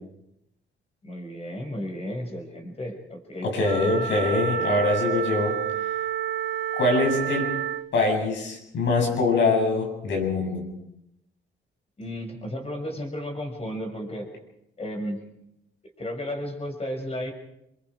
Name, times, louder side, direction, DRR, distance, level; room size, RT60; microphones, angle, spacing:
voice 1, 1.0-4.1 12.0-14.3 14.8-15.2 16.0-17.3, equal, 30° left, 4 dB, 6.2 m, -33 dB
voice 2, 3.4-5.6 6.7-7.5 7.9-10.6, left 3 dB, 65° left, 1 dB, 8.0 m, -23 dB
Wind instrument woodwind instrument, 3.6-7.9, right 10 dB, 75° right, 1.3 m, -29 dB
27.5 x 23.0 x 5.0 m, 0.80 s
cardioid pair, 90°, 20 cm